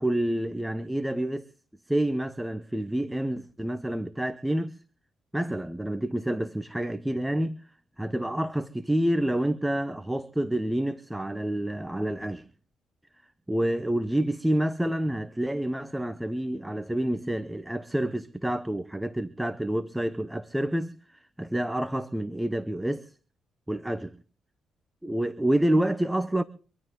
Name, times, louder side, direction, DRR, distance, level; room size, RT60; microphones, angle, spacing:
voice 1, 0.0-1.5 1.9-4.8 5.3-7.6 8.0-12.4 13.5-23.1 23.7-24.2 25.0-26.4, right 1 dB, 5° right, 0.9 m, -28 dB
26.0 x 12.0 x 3.9 m
cardioid pair, 90°, 0 cm